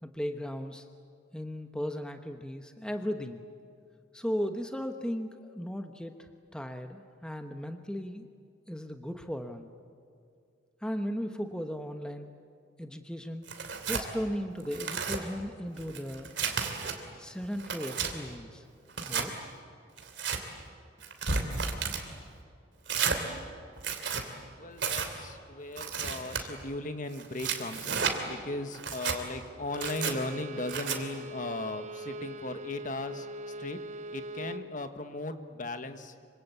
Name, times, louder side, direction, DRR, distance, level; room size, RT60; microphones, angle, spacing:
voice 1, 0.0-0.9 1.3-3.4 4.1-8.3 8.7-9.7 10.8-12.3 12.8-13.5 13.9-16.3 17.2-18.7 19.0-19.4, equal, 5° left, 6 dB, 1.0 m, -36 dB
Tearing, 13.5-14.1 14.6-15.2 15.8-16.9 17.4-18.1 18.9-19.3 20.0-20.4 21.0-22.0 22.9-23.2 23.8-24.2 24.8-25.1 25.8-26.4 27.1-28.2 28.7-29.2 29.7-30.1 30.7-31.0, right 6 dB, 70° right, 2.9 m, -32 dB
voice 2, 24.5-33.3 33.6-33.8 34.1-36.1, left 2 dB, 45° left, 8 dB, 1.5 m, -37 dB
Bowed string instrument, 29.6-34.7, right 1 dB, 40° right, 0.7 m, -41 dB
26.0 x 25.0 x 8.3 m, 2.3 s
head